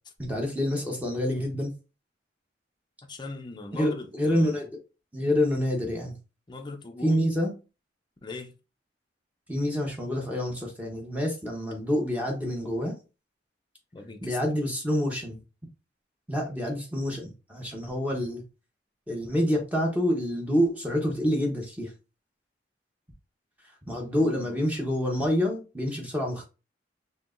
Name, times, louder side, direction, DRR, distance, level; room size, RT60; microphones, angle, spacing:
voice 1, 0.2-1.7 3.7-4.7 5.1-6.1 7.0-7.5 9.5-12.9 14.2-15.4 16.3-18.4 19.1-21.9 23.9-26.4, equal, 10° right, 0.9 m, -27 dB
voice 2, 3.1-4.7 6.5-7.2 8.2-8.5 13.9-14.5 24.1-24.6, left 3 dB, 25° left, 0.5 m, -40 dB
4.5 x 2.8 x 2.5 m
head